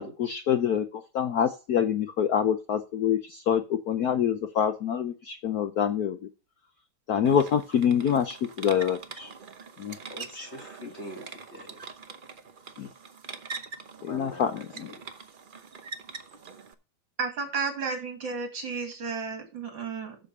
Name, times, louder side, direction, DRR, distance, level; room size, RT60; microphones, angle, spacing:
voice 1, 0.0-6.2 7.1-9.3 9.8-10.0 12.8-12.9 14.0-14.9, left 8 dB, 65° left, 1.0 m, -26 dB
sound 1, 7.2-16.7, right 5 dB, 85° right, 0.4 m, -43 dB
voice 2, 10.1-11.8 14.1-15.0, left 1 dB, 35° left, 1.6 m, -43 dB
voice 3, 17.2-20.2, right 4 dB, 65° right, 3.0 m, -32 dB
7.8 x 6.9 x 5.3 m
omnidirectional pair, 2.2 m